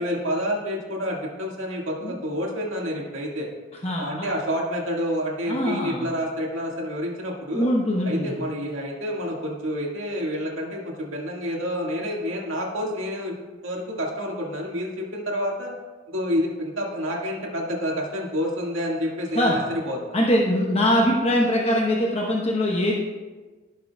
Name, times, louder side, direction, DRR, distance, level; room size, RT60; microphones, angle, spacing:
voice 1, 0.0-3.5 4.0-7.7 8.0-13.4 13.6-15.7 16.1-20.2, equal, 75° right, -1 dB, 1.8 m, -28 dB
voice 2, 3.8-4.3 5.5-6.1 7.5-8.4 19.4-19.6 20.1-22.9, equal, 30° left, -2 dB, 0.9 m, -22 dB
15.5 x 6.5 x 2.3 m, 1.3 s
head